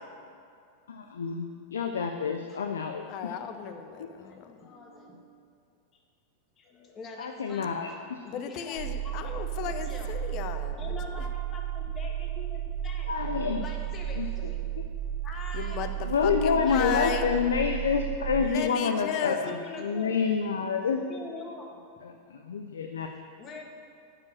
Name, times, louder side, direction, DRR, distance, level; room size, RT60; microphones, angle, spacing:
voice 1, 0.9-3.3 4.0-4.1 7.2-8.2 13.1-13.7 14.2-14.3 16.0-21.1 22.0-23.1, left 6 dB, 85° left, 5 dB, 0.5 m, -28 dB
voice 2, 3.1-4.6 8.2-10.8 15.5-17.2 18.4-19.4, left 8 dB, 50° left, 9 dB, 0.7 m, -35 dB
voice 3, 4.3-5.2 6.6-10.2 10.8-13.2 13.6-14.6 15.2-15.9 16.6-17.4 18.8-20.2 20.9-21.8 23.4-23.6, left 3 dB, 30° left, 1 dB, 1.6 m, -44 dB
sound 1, 8.7-18.5, right 11 dB, 70° right, 1.3 m, -33 dB
9.4 x 5.0 x 7.1 m, 2.3 s
hypercardioid pair, 100°, 0 cm